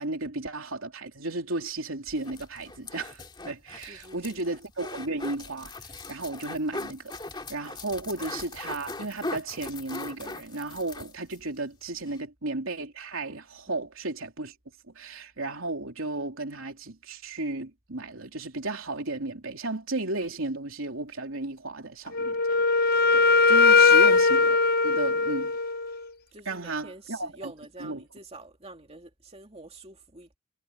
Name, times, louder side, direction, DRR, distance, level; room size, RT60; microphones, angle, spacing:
voice 1, 0.0-5.7 6.1-7.2 7.5-14.5 14.9-22.6 23.1-24.6 24.8-25.5 26.4-27.5 27.8-28.0, right 2 dB, 80° right, 3.3 m, -34 dB
sound 1, 2.1-11.4 11.7-11.8 12.1-12.2, left 2 dB, 20° left, 2.2 m, -40 dB
voice 2, 3.9-4.4 8.0-8.1 13.7-13.8 23.8-24.0 26.3-30.4, right 2 dB, 30° right, 2.5 m, -47 dB
Wind instrument woodwind instrument, 22.1-26.0, left 4 dB, 45° left, 0.8 m, -20 dB
head